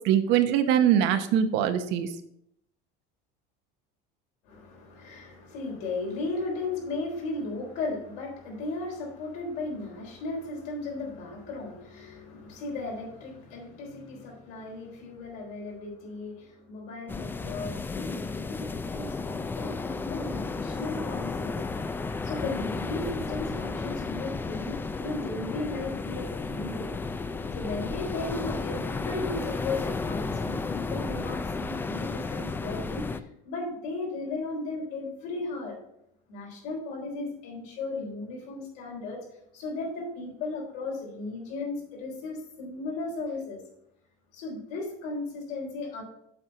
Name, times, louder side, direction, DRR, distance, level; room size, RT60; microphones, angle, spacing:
voice 1, 0.0-2.1, right 9 dB, 60° right, 8 dB, 0.9 m, -22 dB
voice 2, 4.4-21.6 22.2-26.9 27.5-35.8 36.3-39.3 39.5-43.6 44.3-46.0, left 3 dB, 75° left, -1 dB, 3.8 m, -36 dB
sound 1, 17.1-33.2, left 4 dB, 10° left, 0.3 m, -33 dB
7.9 x 4.4 x 6.3 m, 0.74 s
cardioid pair, 140°, 21 cm